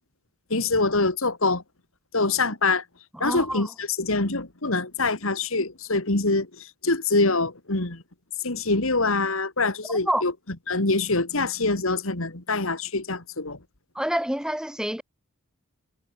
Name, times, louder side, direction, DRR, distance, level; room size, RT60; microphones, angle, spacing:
voice 1, 0.5-1.6 2.1-2.8 3.2-8.0 8.4-10.3 10.7-13.6, left 3 dB, 70° left, 2.5 m, -25 dB
voice 2, 3.1-3.7 10.1-10.2 14.0-15.0, equal, 5° right, 1.9 m, -27 dB
head